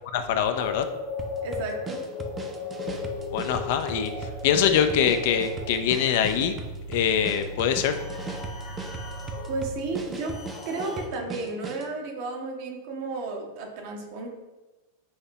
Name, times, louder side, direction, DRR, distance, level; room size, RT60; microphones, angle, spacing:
voice 1, 0.0-0.9 3.3-6.5 6.9-8.0, left 8 dB, 50° left, 8 dB, 0.3 m, -24 dB
sound 1, 0.5-11.1, left 5 dB, 35° left, 0.8 m, -37 dB
sound 2, 1.2-11.9, right 4 dB, 20° right, 0.5 m, -38 dB
voice 2, 1.4-2.0 9.5-10.3 10.6-14.3, right 3 dB, 50° right, 2 dB, 0.9 m, -33 dB
sound 3, 2.8-10.7, right 2 dB, 80° right, 1.2 m, -42 dB
5.6 x 2.8 x 2.8 m, 1.1 s
figure-of-eight pair, 90°, 0 cm